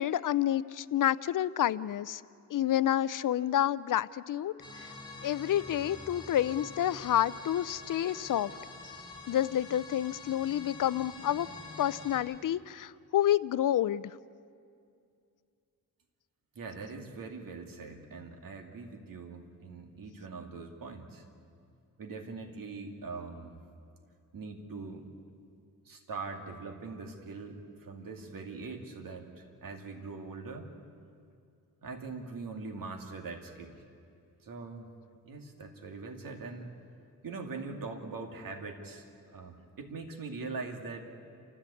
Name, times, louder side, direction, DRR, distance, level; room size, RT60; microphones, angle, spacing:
voice 1, 0.0-2.2 2.5-4.5 5.2-8.5 9.3-11.5 11.8-14.1, left 11 dB, 65° left, 18 dB, 0.5 m, -29 dB
sound 1, 4.6-12.2, left 3 dB, 10° left, 4.4 m, -46 dB
voice 2, 16.5-21.3 22.0-23.6 24.3-25.1 25.9-30.7 31.8-33.8 34.4-34.9 35.2-36.7 37.2-39.1 39.3-41.1, right 4 dB, 70° right, 3 dB, 2.4 m, -42 dB
28.5 x 14.0 x 8.4 m, 2.4 s
wide cardioid pair, 150°, 35 cm